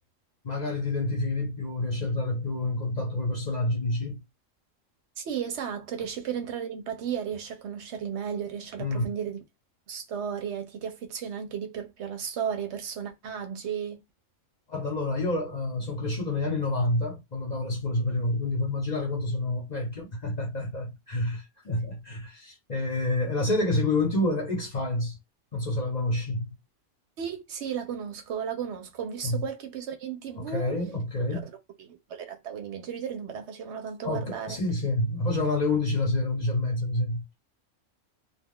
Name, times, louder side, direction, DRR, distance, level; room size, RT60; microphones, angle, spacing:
voice 1, 0.4-4.2 8.8-9.0 14.7-25.2 25.5-26.5 29.2-29.4 30.4-31.5 34.0-37.2, left 2 dB, 40° left, 0.8 m, -28 dB
voice 2, 5.2-9.4 9.9-14.0 27.2-30.8 31.3-31.4 31.8-34.6, right 8 dB, 65° right, 0.8 m, -34 dB
2.3 x 2.2 x 3.5 m
omnidirectional pair, 1.3 m